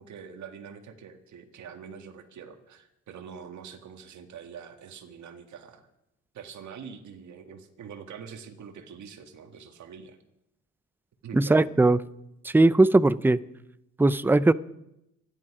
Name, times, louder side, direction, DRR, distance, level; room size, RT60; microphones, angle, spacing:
voice 1, 0.0-5.9 6.3-10.2 11.2-11.7, right 7 dB, 70° right, 5 dB, 2.1 m, -44 dB
voice 2, 11.3-12.0 12.4-13.4 14.0-14.5, right 2 dB, 5° right, 16 dB, 0.6 m, -19 dB
26.0 x 11.0 x 5.0 m, 0.85 s
cardioid pair, 90°, 30 cm